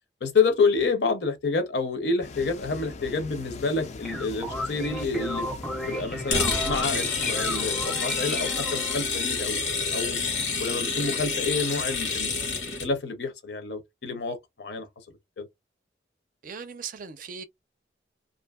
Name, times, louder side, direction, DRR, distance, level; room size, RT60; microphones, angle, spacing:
voice 1, 0.2-5.5 5.9-10.2 10.6-12.4 12.8-14.9 15.4-15.5, left 4 dB, 65° left, 0.8 m, -28 dB
sound 1, 2.2-7.9, left 3 dB, 40° left, 0.4 m, -40 dB
sound 2, 3.8-9.0, left 1 dB, ahead, 0.6 m, -34 dB
sound 3, 6.3-12.9, left 4 dB, 90° left, 1.2 m, -28 dB
voice 2, 16.4-17.4, right 6 dB, 45° right, 0.4 m, -38 dB
2.6 x 2.5 x 2.2 m
head